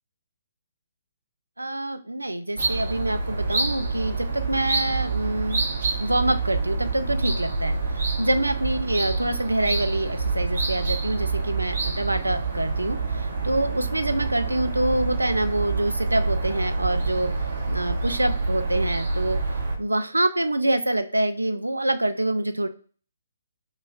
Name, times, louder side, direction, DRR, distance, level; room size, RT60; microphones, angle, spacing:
voice 1, 1.6-5.6 6.0-17.3 17.7-19.4 19.8-22.7, right 1 dB, 80° right, 8 dB, 0.4 m, -26 dB
sound 1, 2.6-19.8, right 3 dB, 50° right, 1.1 m, -27 dB
3.1 x 2.4 x 3.9 m, 0.41 s
figure-of-eight pair, 135°, 0 cm